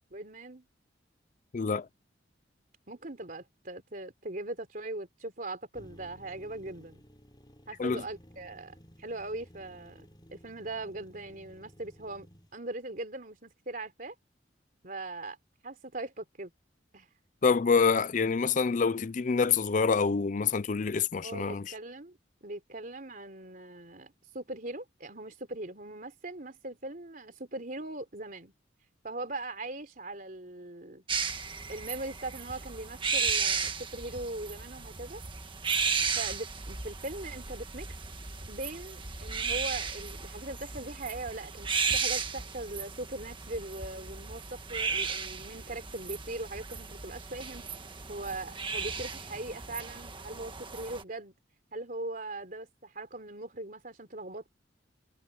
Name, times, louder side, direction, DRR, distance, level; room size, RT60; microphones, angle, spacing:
voice 1, 0.1-0.7 2.9-7.0 7.7-12.3 12.5-14.2 14.8-15.4 15.6-16.5 16.9-17.1 21.2-28.5 29.0-31.0 31.7-35.2 36.2-37.9 38.5-47.6 48.1-51.3 51.7-54.5, right 2 dB, 45° right, 3.8 m, -40 dB
voice 2, 1.5-1.9 7.8-8.0 17.4-21.7, left 5 dB, 40° left, 0.5 m, -26 dB
sound 1, 5.7-12.5, equal, 20° left, 5.9 m, -55 dB
sound 2, 31.1-51.0, right 5 dB, 25° right, 1.6 m, -35 dB
head